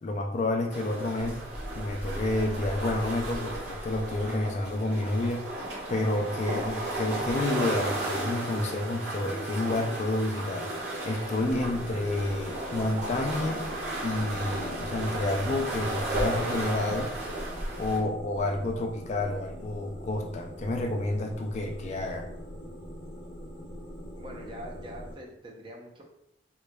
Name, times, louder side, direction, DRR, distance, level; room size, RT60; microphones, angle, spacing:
voice 1, 0.0-1.4 1.7-5.5 5.9-13.7 14.0-17.1 17.8-22.3, left 2 dB, 40° left, 4 dB, 0.3 m, -29 dB
sound 1, 0.7-18.0, right 1 dB, 80° right, 1.3 m, -34 dB
sound 2, 11.4-25.1, equal, 90° left, 0.8 m, -42 dB
voice 2, 24.2-26.0, equal, 25° right, -1 dB, 0.6 m, -44 dB
3.7 x 3.1 x 2.2 m, 0.79 s
head